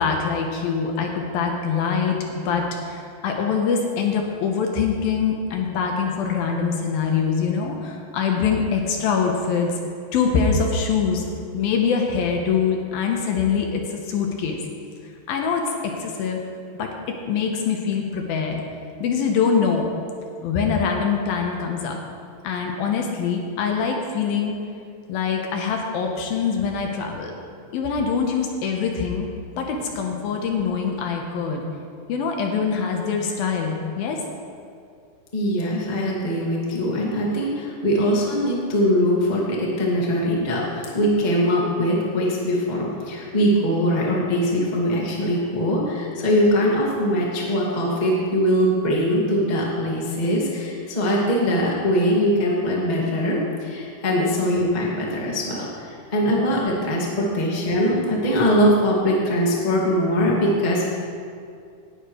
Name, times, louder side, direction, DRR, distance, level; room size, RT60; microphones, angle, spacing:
voice 1, 0.0-9.8 10.1-11.2 11.5-14.6 15.3-16.4 16.8-16.9 17.3-18.6 19.0-19.9 20.4-22.0 22.4-24.6 25.1-27.3 27.7-31.7 32.1-34.2, left 6 dB, 75° left, 2 dB, 2.7 m, -24 dB
voice 2, 35.3-60.9, equal, 20° left, -4 dB, 1.0 m, -22 dB
18.0 x 11.5 x 3.2 m, 2.3 s
omnidirectional pair, 4.6 m